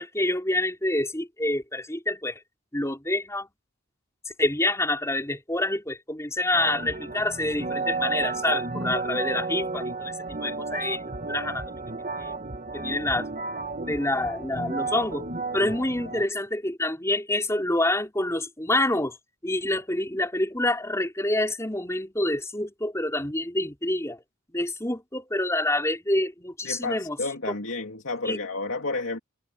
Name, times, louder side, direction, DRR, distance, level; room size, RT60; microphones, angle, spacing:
voice 1, 0.0-2.4 2.7-3.5 4.4-11.8 12.2-12.3 12.7-13.3 13.9-15.2 15.5-19.2 19.4-24.2 24.5-27.2 27.4-27.5 28.2-28.4, left 1 dB, 15° left, 5.2 m, -27 dB
sound 1, 6.5-16.2, right 3 dB, 40° right, 1.7 m, -32 dB
voice 2, 26.6-29.2, left 3 dB, 70° left, 2.6 m, -31 dB
head